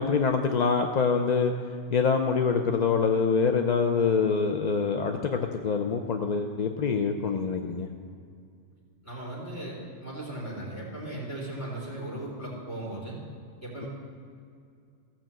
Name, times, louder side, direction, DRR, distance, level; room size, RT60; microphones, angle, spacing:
voice 1, 0.0-1.5 1.9-7.9, left 5 dB, 50° left, 5 dB, 0.5 m, -25 dB
voice 2, 9.0-13.2 13.6-13.9, right 1 dB, 10° left, -5 dB, 3.5 m, -37 dB
15.0 x 5.9 x 7.5 m, 2.3 s
omnidirectional pair, 1.3 m